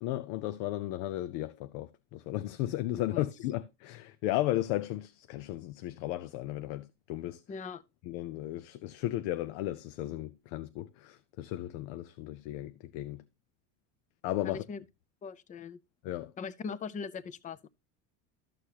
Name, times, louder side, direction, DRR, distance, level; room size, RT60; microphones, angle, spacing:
voice 1, 0.0-7.4 8.1-13.2 14.2-14.6 16.0-16.3, left 15 dB, 75° left, 0.7 m, -35 dB
voice 2, 7.5-7.8 14.4-14.8 15.2-15.8 16.4-17.7, left 5 dB, 20° left, 0.5 m, -40 dB
13.0 x 6.6 x 2.8 m
cardioid pair, 145°, 36 cm